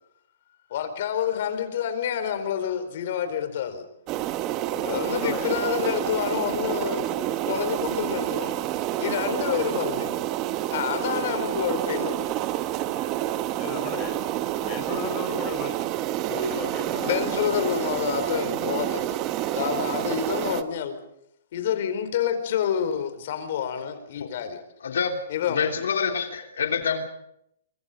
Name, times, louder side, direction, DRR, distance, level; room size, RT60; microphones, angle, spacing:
voice 1, 0.7-3.8 4.8-8.6 9.0-10.2 10.7-12.4 17.0-19.2 19.5-21.0 21.5-24.6 25.3-25.7, left 8 dB, 50° left, 9 dB, 4.5 m, -28 dB
sound 1, 4.1-20.6, right 13 dB, 25° right, 1.1 m, -28 dB
voice 2, 4.7-5.5 9.2-9.7 13.6-14.2 14.6-15.8 16.3-17.1, left 5 dB, 25° left, 5 dB, 4.0 m, -35 dB
voice 3, 24.8-25.2 25.5-27.0, left 6 dB, 80° left, 4 dB, 3.3 m, -26 dB
25.0 x 24.5 x 5.3 m, 0.74 s
hypercardioid pair, 160°, 0 cm